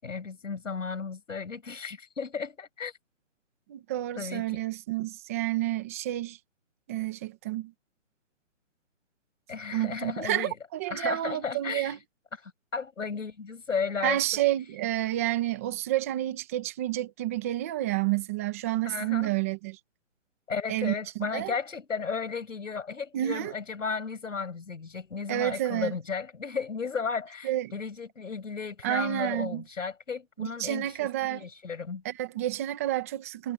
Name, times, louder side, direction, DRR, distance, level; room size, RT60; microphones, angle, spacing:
voice 1, 0.0-2.9 4.2-4.6 9.5-10.5 10.9-12.0 12.4-14.4 18.8-19.4 20.5-32.0, left 5 dB, 85° left, 7.1 m, -34 dB
voice 2, 3.7-6.4 6.9-7.7 9.7-12.0 14.0-19.8 20.7-20.9 21.3-21.5 23.1-23.5 25.3-25.9 27.4-27.7 28.8-29.6 30.4-31.5 32.0-33.5, right 14 dB, 10° right, 1.7 m, -29 dB
hypercardioid pair, 180°, 38 cm